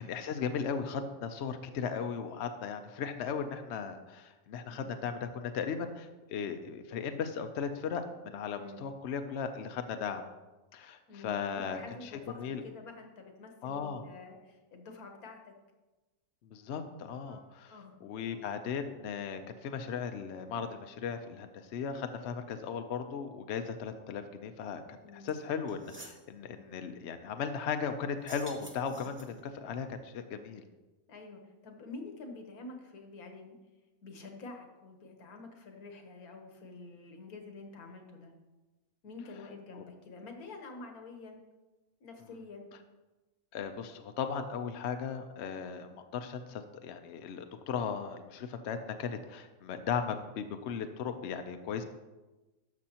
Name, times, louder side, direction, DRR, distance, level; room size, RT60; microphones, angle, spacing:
voice 1, 0.0-10.2 10.7-12.1 12.4-12.6 13.6-14.0 16.4-17.8 18.0-30.6 39.8-39.9 43.5-51.8, left 6 dB, 60° left, 7 dB, 0.8 m, -37 dB
voice 2, 11.1-15.5 17.3-18.0 18.3-18.4 25.0-25.3 31.1-33.6 34.0-38.3 39.0-41.4 42.0-42.7, left 3 dB, 80° left, 3 dB, 1.6 m, -48 dB
sound 1, 25.3-25.4 25.7-26.2 28.1-29.5, right 1 dB, 10° right, 0.9 m, -49 dB
12.5 x 6.2 x 2.9 m, 1.1 s
omnidirectional pair, 1.5 m